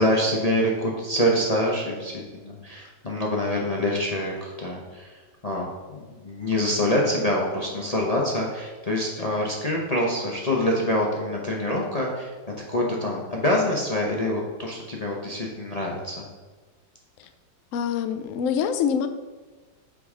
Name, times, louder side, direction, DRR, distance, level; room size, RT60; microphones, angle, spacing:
voice 1, 0.0-16.2, left 1 dB, 40° left, -2 dB, 0.5 m, -26 dB
voice 2, 17.7-19.1, left 7 dB, 80° left, 9 dB, 0.7 m, -25 dB
7.6 x 3.8 x 4.9 m, 1.3 s
omnidirectional pair, 2.0 m